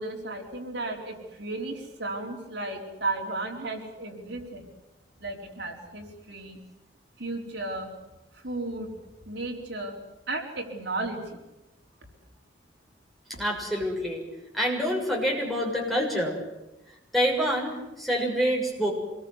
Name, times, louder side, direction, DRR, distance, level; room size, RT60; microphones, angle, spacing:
voice 1, 0.0-4.7 5.2-6.6 7.2-7.9 8.3-8.9 9.3-10.0 10.3-11.4, right 2 dB, 65° right, 1 dB, 4.7 m, -34 dB
voice 2, 13.4-14.2 14.5-16.4 17.1-18.9, equal, ahead, -1 dB, 6.7 m, -26 dB
26.5 x 21.5 x 8.3 m, 0.99 s
head